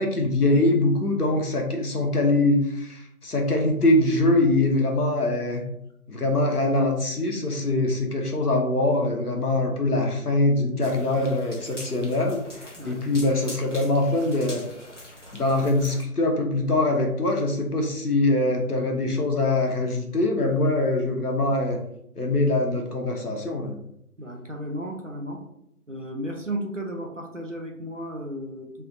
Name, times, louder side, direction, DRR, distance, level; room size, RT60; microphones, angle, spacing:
voice 1, 0.0-5.6 6.1-14.6 15.3-21.8 22.2-23.8, left 2 dB, 80° left, 2 dB, 1.0 m, -23 dB
sound 1, 10.8-16.0, left 1 dB, 55° left, 0.8 m, -43 dB
voice 2, 24.2-25.4 25.9-28.7, right 1 dB, 55° right, 2 dB, 0.6 m, -34 dB
3.3 x 2.4 x 3.8 m, 0.75 s
figure-of-eight pair, 180°, 45 cm